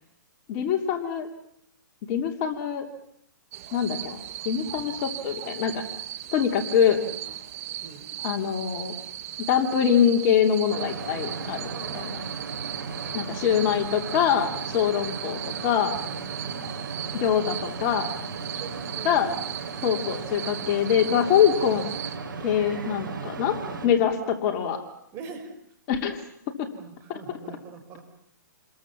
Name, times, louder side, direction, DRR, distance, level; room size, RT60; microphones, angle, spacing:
voice 1, 0.5-1.3 2.1-2.9 3.7-5.8 6.3-7.0 8.2-8.9 9.5-12.2 13.1-15.9 17.1-18.1 19.0-19.3 19.8-21.9 22.4-23.6 23.8-24.8 25.9-26.2 27.1-27.2, left 8 dB, 35° left, 4 dB, 2.8 m, -24 dB
sound 1, 3.5-22.2, right 12 dB, 45° right, 1.8 m, -37 dB
sound 2, 10.7-23.9, right 4 dB, 75° right, 6.1 m, -36 dB
voice 2, 11.7-12.3 13.0-13.2 16.0-16.3 18.5-19.3 22.7-23.2 23.6-24.0 25.1-25.5 26.7-28.0, right 6 dB, 25° right, 4 dB, 5.5 m, -43 dB
29.0 x 21.5 x 7.3 m, 0.71 s
hypercardioid pair, 145°, 11 cm